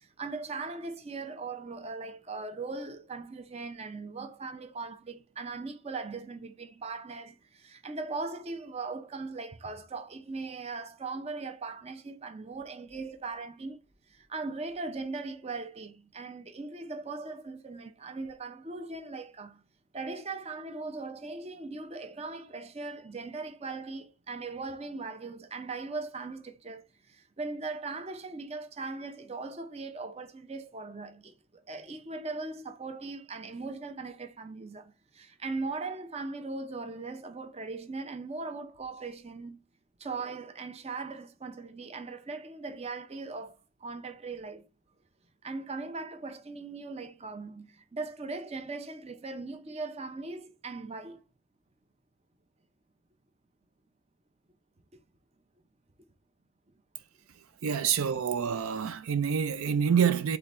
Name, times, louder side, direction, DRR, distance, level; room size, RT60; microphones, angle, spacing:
voice 1, 0.2-13.8 14.1-19.6 19.9-26.8 27.1-31.3 31.7-39.6 40.0-44.6 45.4-51.2, right 3 dB, 30° right, 0.6 m, -39 dB
voice 2, 57.6-60.4, right 7 dB, 80° right, 0.4 m, -27 dB
3.7 x 3.4 x 4.1 m
head